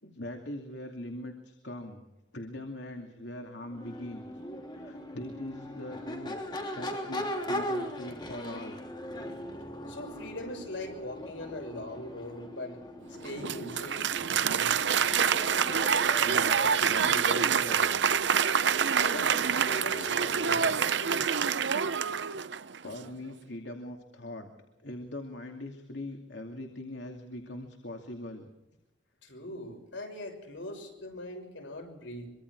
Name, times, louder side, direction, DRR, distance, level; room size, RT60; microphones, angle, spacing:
voice 1, 0.0-2.1 2.3-4.2 4.7-6.4 6.7-8.8 16.2-17.8 22.8-24.5 24.8-28.5, left 1 dB, 70° left, 3 dB, 2.6 m, -41 dB
Crowd / Race car auto racing / Accelerating revving vroom, 3.7-20.7, left 1 dB, 25° left, 3.3 m, -40 dB
voice 2, 9.9-12.8 13.1-15.4 18.9-21.6 29.2-32.3, left 1 dB, 85° left, 3 dB, 6.5 m, -41 dB
Applause, 13.2-22.8, right 7 dB, 70° right, 0.7 m, -26 dB
24.5 x 24.5 x 4.8 m, 0.99 s
head